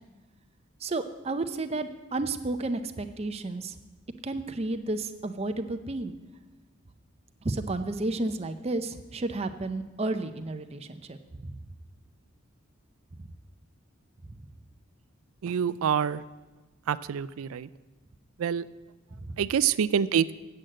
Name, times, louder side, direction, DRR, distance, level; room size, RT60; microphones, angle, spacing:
voice 1, 0.8-3.8 4.2-6.1 7.4-11.6 19.1-19.3, right 2 dB, 30° right, 8 dB, 0.5 m, -32 dB
voice 2, 15.4-16.2 16.9-17.7 18.4-18.7 19.4-20.3, right 8 dB, 80° right, 17 dB, 0.4 m, -26 dB
8.4 x 7.7 x 7.6 m, 1.2 s
head